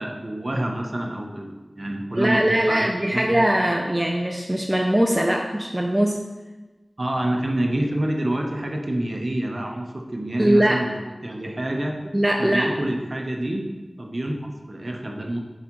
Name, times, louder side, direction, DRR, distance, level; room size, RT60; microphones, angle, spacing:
voice 1, 0.0-3.4 7.0-10.9 11.2-12.0 12.4-13.7 14.0-15.4, right 1 dB, 45° right, 2 dB, 0.9 m, -27 dB
voice 2, 2.1-6.2 10.4-10.9 12.1-12.7, right 1 dB, 15° right, 1 dB, 0.5 m, -21 dB
7.8 x 4.9 x 3.0 m, 1.2 s
wide cardioid pair, 70°, 0 cm